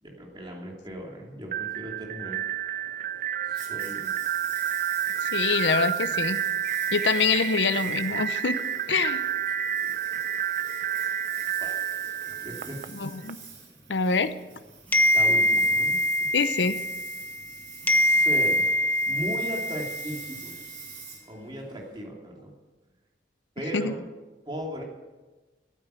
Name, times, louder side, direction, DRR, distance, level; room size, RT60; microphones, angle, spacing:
voice 1, 0.0-2.5 3.5-4.1 9.6-9.9 10.4-10.5 11.6-11.9 12.4-13.2 15.1-16.3 17.9-18.7 19.0-20.6 21.3-22.5 23.5-24.0 24.4-24.8, equal, 25° right, -1 dB, 2.8 m, -37 dB
sound 1, 1.5-13.3, right 9 dB, 45° right, 0.5 m, -30 dB
Engine, 3.5-22.0, right 6 dB, 80° right, 3.8 m, -46 dB
voice 2, 5.2-6.4 6.9-8.6 8.9-9.2 13.0-13.4 13.9-14.3 16.3-16.7 23.7-23.9, left 4 dB, 80° left, 11 dB, 0.8 m, -25 dB
sound 2, 14.9-17.5 17.9-20.4, left 1 dB, 10° left, 0.6 m, -24 dB
14.0 x 9.2 x 8.0 m, 1.2 s
head